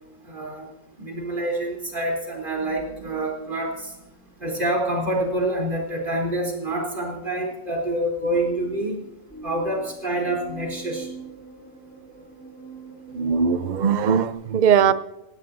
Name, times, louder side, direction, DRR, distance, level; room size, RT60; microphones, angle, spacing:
voice 1, 0.3-0.7 1.0-3.9 4.4-9.0 9.4-11.1, right 1 dB, 35° right, -1 dB, 3.8 m, -27 dB
sound 1, 2.6-5.7 8.3-14.3, right 3 dB, 5° left, 5.9 m, -44 dB
voice 2, 13.1-14.9, right 7 dB, 50° right, 13 dB, 0.5 m, -20 dB
17.0 x 16.0 x 2.7 m, 0.91 s
omnidirectional pair, 1.6 m